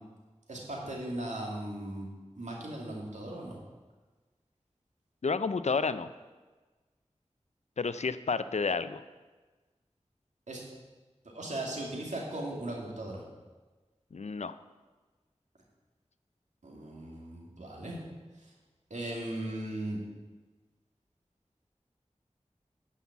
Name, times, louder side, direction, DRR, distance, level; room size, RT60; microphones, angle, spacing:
voice 1, 0.5-2.1 2.3-3.6 10.5-10.6 11.3-13.2 16.6-18.0 18.9-20.0, right 1 dB, 85° right, -2 dB, 2.4 m, -37 dB
voice 2, 5.2-6.1 7.8-9.0 14.1-14.6, left 4 dB, 70° left, 13 dB, 0.5 m, -30 dB
10.5 x 5.6 x 7.2 m, 1.3 s
wide cardioid pair, 40°, 12 cm